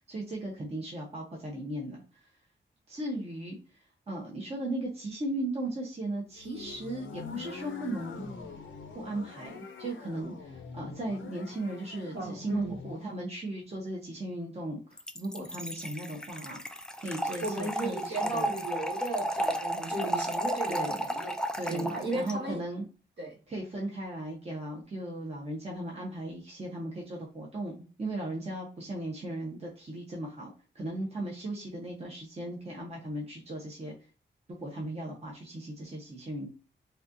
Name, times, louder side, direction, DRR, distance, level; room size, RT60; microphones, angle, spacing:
voice 1, 0.1-2.3 2.9-8.2 8.9-18.6 20.7-21.1 21.6-22.8 23.5-30.5 30.7-33.9 34.5-36.5, right 1 dB, 30° right, -3 dB, 0.9 m, -37 dB
sound 1, 6.3-13.2, left 4 dB, 85° left, 0.7 m, -43 dB
voice 2, 12.1-12.7 17.4-21.3 21.7-22.6 23.2-23.4, right 2 dB, 60° right, -1 dB, 1.6 m, -35 dB
Trickle dribble / Fill (with liquid), 15.0-22.3, equal, 5° left, 0.3 m, -33 dB
4.1 x 2.4 x 2.5 m, 0.35 s
wide cardioid pair, 145°, 20 cm